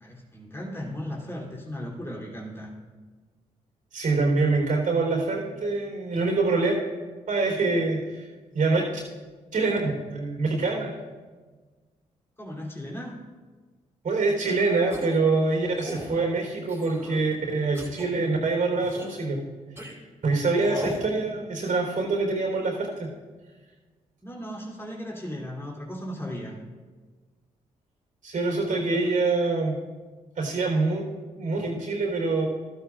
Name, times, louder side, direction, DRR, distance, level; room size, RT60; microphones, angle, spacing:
voice 1, 0.0-2.7 12.4-13.2 24.2-26.6 29.0-29.1, equal, 15° left, -3 dB, 3.3 m, -36 dB
voice 2, 3.9-6.7 7.3-8.3 8.5-9.0 9.5-10.9 14.0-19.4 20.2-23.1 28.2-29.8 30.4-31.0 31.4-32.5, right 3 dB, 60° right, 0 dB, 4.1 m, -25 dB
sound 1, 14.9-15.2 15.8-16.1 16.7-17.2 17.7-18.1 18.8-19.2 19.8-19.9 20.6-21.0, equal, 15° right, 4.1 m, -38 dB
16.0 x 12.5 x 2.5 m, 1.4 s
supercardioid pair, 45°, 15 cm